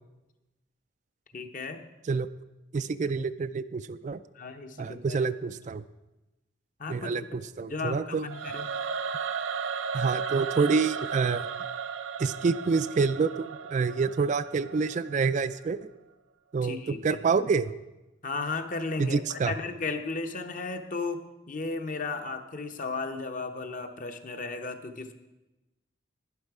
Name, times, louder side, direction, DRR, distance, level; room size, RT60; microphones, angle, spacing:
voice 1, 1.3-1.9 4.3-5.2 6.8-7.4 7.7-8.7 16.6-17.2 18.2-25.1, left 3 dB, 45° left, 6 dB, 0.9 m, -35 dB
voice 2, 2.7-4.2 4.8-5.8 6.9-8.2 9.9-11.5 12.2-15.9 16.5-17.7 19.0-19.5, right 4 dB, 40° right, 12 dB, 0.3 m, -27 dB
Singing / Musical instrument, 8.3-15.4, right 6 dB, 80° right, 0.6 m, -35 dB
11.5 x 10.0 x 4.8 m, 1.0 s
head